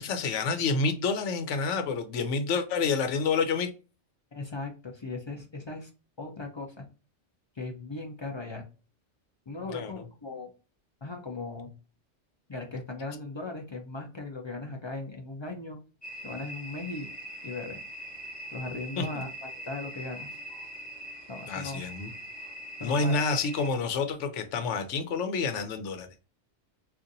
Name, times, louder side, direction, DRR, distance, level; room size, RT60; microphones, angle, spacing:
voice 1, 0.0-3.7 9.7-9.9 19.0-19.1 21.5-22.1 22.8-26.1, left 4 dB, 85° left, 1.0 m, -28 dB
voice 2, 4.3-5.9 6.2-6.9 7.6-8.7 9.5-10.5 11.0-11.8 12.5-15.8 16.2-17.1 17.4-17.8 18.5-20.3 21.3-21.8 22.8-23.2, left 3 dB, 40° left, 0.4 m, -38 dB
sound 1, 16.0-23.7, equal, 5° left, 1.3 m, -42 dB
3.8 x 2.5 x 2.6 m
omnidirectional pair, 1.2 m